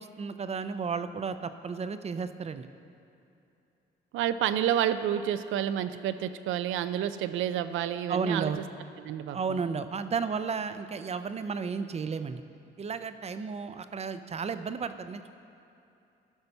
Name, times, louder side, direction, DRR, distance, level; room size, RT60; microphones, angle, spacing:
voice 1, 0.0-2.7 8.1-8.6 9.3-12.4 12.8-15.3, right 5 dB, 30° right, 11 dB, 0.5 m, -33 dB
voice 2, 4.1-8.6 9.0-9.6, right 10 dB, 80° right, 11 dB, 0.5 m, -29 dB
12.5 x 5.6 x 5.4 m, 2.8 s
cardioid pair, 90°, 20 cm